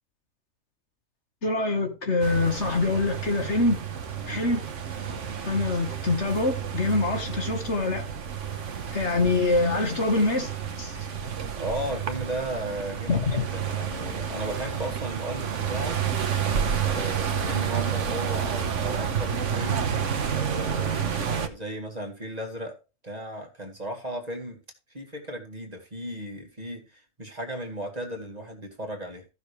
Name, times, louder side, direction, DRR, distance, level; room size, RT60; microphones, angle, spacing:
voice 1, 1.4-3.8 4.3-4.7 5.5-8.1 8.9-10.5 10.8-11.0 13.1-13.4, left 3 dB, 50° left, 1.9 m, -25 dB
sound 1, 2.2-21.5, right 7 dB, 60° right, 1.4 m, -30 dB
voice 2, 11.6-16.0 16.8-19.8 20.3-22.8 23.0-24.6 24.9-29.3, right 1 dB, 25° right, 2.1 m, -35 dB
14.5 x 6.7 x 3.3 m
omnidirectional pair, 1.5 m